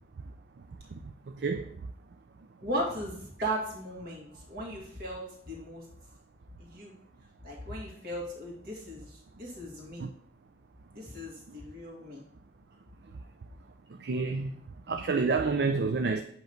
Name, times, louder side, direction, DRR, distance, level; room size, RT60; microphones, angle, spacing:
voice 1, 1.3-1.7 10.0-10.1 14.0-14.5 14.9-16.2, right 4 dB, 75° right, 0.4 m, -28 dB
voice 2, 2.6-3.1 3.4-5.9 6.6-6.9 7.4-10.1 10.9-12.2, right 1 dB, 55° right, 2.0 m, -37 dB
8.0 x 3.1 x 5.1 m
head